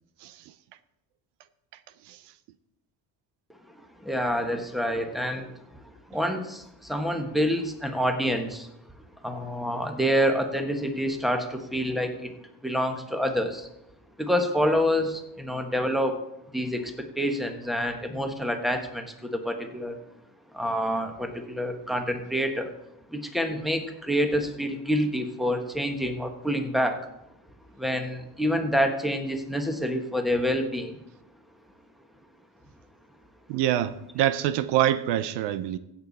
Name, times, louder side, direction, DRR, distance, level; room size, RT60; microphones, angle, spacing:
voice 1, 4.0-5.8 6.1-8.7 9.2-12.3 12.6-13.7 14.2-16.2 16.5-20.0 20.5-22.7 23.1-27.1 27.8-30.9, equal, ahead, 1.5 m, -27 dB
voice 2, 33.5-35.8, right 12 dB, 75° right, 0.7 m, -25 dB
16.0 x 7.1 x 4.2 m
cardioid pair, 100°, 41 cm